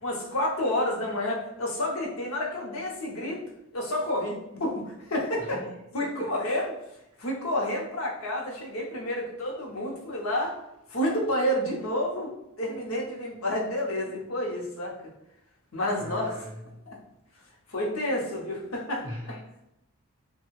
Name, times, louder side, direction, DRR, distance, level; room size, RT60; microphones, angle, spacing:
voice 1, 0.0-3.4 3.7-5.6 5.9-6.7 7.2-10.6 10.9-12.3 12.6-14.9 15.7-16.4 16.9-17.0 17.7-19.4, left 1 dB, 75° left, -1 dB, 0.7 m, -29 dB
voice 2, 5.4-6.4 16.0-16.9 19.0-19.3, equal, 25° right, -6 dB, 0.6 m, -41 dB
3.2 x 2.2 x 3.0 m, 0.84 s
head